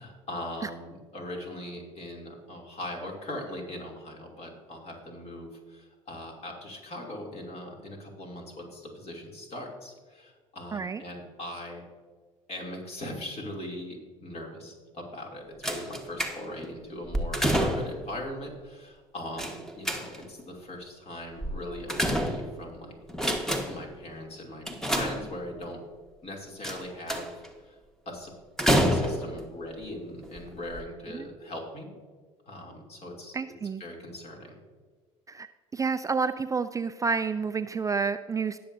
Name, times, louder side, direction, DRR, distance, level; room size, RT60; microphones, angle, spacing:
voice 1, 0.0-11.9 12.5-15.4 15.7-22.9 23.6-24.6 24.9-25.8 26.2-27.3 27.7-27.8 28.1-28.3 28.6-31.9 32.5-33.3 33.8-34.5, left 1 dB, 40° left, 0 dB, 2.9 m, -40 dB
voice 2, 10.7-11.0 31.1-31.3 33.3-33.8 35.3-35.5 35.7-38.6, right 5 dB, 20° right, 11 dB, 0.4 m, -29 dB
sound 1, 15.6-16.7 17.1-18.1 19.4-20.4 21.4-22.7 23.1-23.9 24.7-25.6 26.6-27.5 28.6-29.4 30.2-30.4 30.7-30.8, equal, 5° left, 1.4 m, -28 dB
19.0 x 6.7 x 2.7 m, 1.5 s
hypercardioid pair, 60°, 16 cm